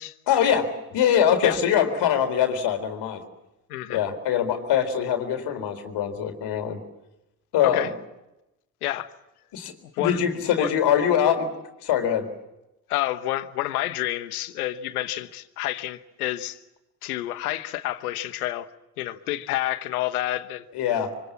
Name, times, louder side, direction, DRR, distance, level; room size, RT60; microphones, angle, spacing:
voice 1, 0.3-3.2 3.9-6.8 7.5-7.9 9.5-11.5 11.8-12.3 20.7-21.1, left 8 dB, 65° left, 4.2 m, -23 dB
voice 2, 3.7-4.0 7.6-7.9 8.8-9.1 10.0-10.2 10.6-10.7 12.9-16.6 17.0-18.7 19.0-20.6, left 15 dB, 85° left, 1.2 m, -29 dB
26.5 x 24.5 x 7.4 m
hypercardioid pair, 55°, 43 cm